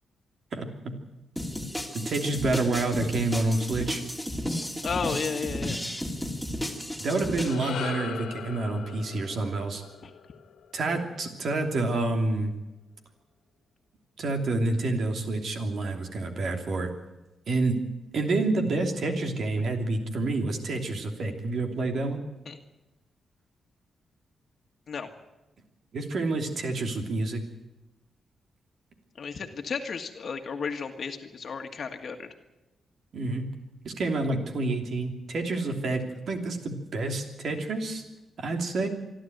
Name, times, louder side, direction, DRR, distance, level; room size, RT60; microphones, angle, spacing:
voice 1, 0.5-0.9 1.9-4.0 7.0-9.8 10.7-12.5 14.2-16.9 17.5-17.8 18.1-22.2 25.9-27.4 33.1-33.5 33.8-38.0 38.4-38.9, right 2 dB, 60° right, 4 dB, 3.0 m, -28 dB
sound 1, 1.4-7.5, left 1 dB, 5° right, 2.8 m, -33 dB
voice 2, 4.8-5.8 10.0-10.1 22.4-22.6 24.9-25.1 29.2-32.3, left 5 dB, 55° left, 4 dB, 1.7 m, -33 dB
sound 2, 7.0-11.5, left 7 dB, 90° left, 2.0 m, -40 dB
26.0 x 12.0 x 9.3 m, 1.0 s
cardioid pair, 100°, 0 cm